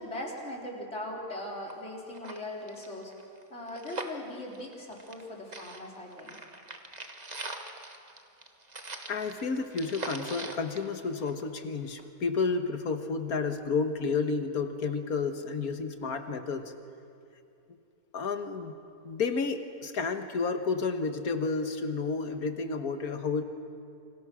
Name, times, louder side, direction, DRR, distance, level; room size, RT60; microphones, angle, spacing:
voice 1, 0.0-3.1 3.5-6.4, left 1 dB, 45° left, -2 dB, 4.4 m, -39 dB
sound 1, 1.3-1.4 1.7-1.8 2.1-5.3 5.5-11.6 12.0-12.1, right 2 dB, 25° right, 1.5 m, -42 dB
voice 2, 9.1-16.7 18.1-18.8 19.0-23.4, left 4 dB, 65° left, 7 dB, 1.8 m, -31 dB
29.5 x 25.5 x 6.3 m, 2.5 s
omnidirectional pair, 1.7 m